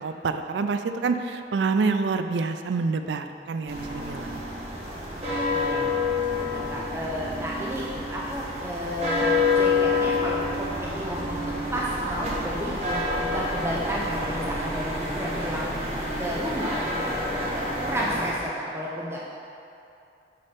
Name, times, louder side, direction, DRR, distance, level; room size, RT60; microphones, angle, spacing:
voice 1, 0.0-4.4, right 4 dB, 85° right, 7 dB, 0.4 m, -27 dB
sound 1, 3.7-18.3, left 3 dB, 35° right, 1.1 m, -28 dB
voice 2, 5.5-5.9 6.4-7.8 8.1-15.7 16.2-19.3, equal, 15° right, -5 dB, 0.6 m, -32 dB
6.5 x 4.2 x 5.7 m, 2.6 s
head